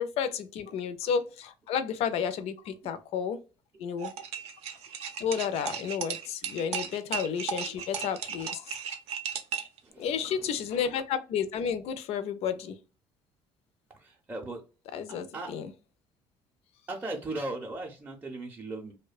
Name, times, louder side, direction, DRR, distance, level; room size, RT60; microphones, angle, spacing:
voice 1, 0.0-3.4 3.8-4.1 5.2-8.8 10.0-12.8 14.9-15.7, left 7 dB, 65° left, 0.4 m, -31 dB
sound 1, 4.0-9.8, right 7 dB, 70° right, 0.5 m, -35 dB
voice 2, 9.8-10.5 13.9-14.6 15.1-15.5 16.9-18.9, right 2 dB, 15° right, 0.5 m, -38 dB
2.7 x 2.1 x 2.3 m
cardioid pair, 105°, 11 cm